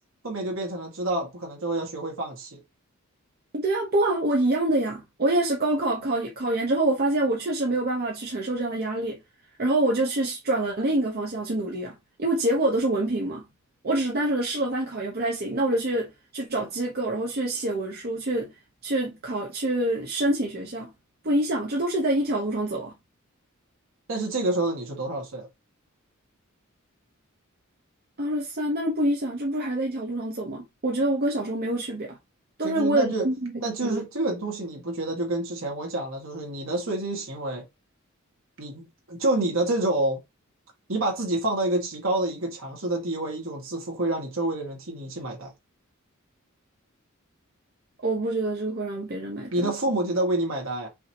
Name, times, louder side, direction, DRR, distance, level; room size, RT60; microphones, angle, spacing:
voice 1, 0.2-2.6 24.1-25.5 32.6-33.2 33.6-37.6 38.6-40.2 40.9-45.5 49.5-50.9, right 2 dB, 65° right, 1.9 m, -28 dB
voice 2, 3.5-9.2 9.6-13.4 13.8-18.5 18.8-20.9 21.2-22.9 28.2-32.2 32.6-34.0 48.0-49.7, right 1 dB, 45° right, 1.0 m, -26 dB
5.6 x 2.8 x 2.9 m
head